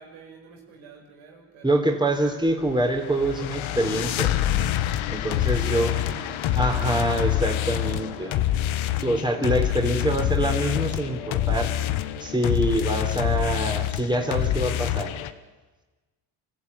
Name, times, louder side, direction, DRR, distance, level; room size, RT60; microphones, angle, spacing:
voice 1, 0.0-1.8 5.4-7.0 7.8-8.6 9.0-9.4, right 5 dB, 85° right, 1 dB, 6.0 m, -47 dB
voice 2, 1.6-4.3 4.6-4.7 5.1-5.9 6.6-8.3 9.0-11.7 12.2-15.1, right 1 dB, 10° right, 3 dB, 3.7 m, -25 dB
sound 1, 2.6-15.3, left 12 dB, 75° left, 1.3 m, -26 dB
25.0 x 15.0 x 9.8 m, 1.2 s
supercardioid pair, 75°, 47 cm